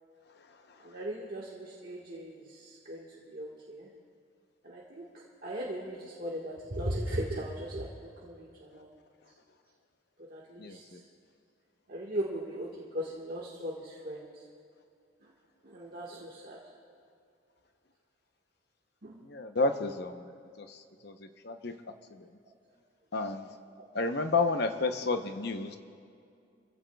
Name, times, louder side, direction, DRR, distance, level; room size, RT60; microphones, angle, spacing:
voice 1, 0.8-3.9 4.6-5.1 5.4-7.9 8.2-8.9 10.3-10.8 11.9-12.7 12.9-14.3 15.6-16.6 19.0-19.2 23.8-23.9, right 1 dB, 50° right, -4 dB, 1.5 m, -38 dB
voice 2, 19.3-20.2 20.6-20.7 21.0-21.1 21.4-21.7 23.1-23.5 23.9-25.8, left 3 dB, 55° left, 7 dB, 0.8 m, -30 dB
28.0 x 15.5 x 2.3 m, 2.4 s
head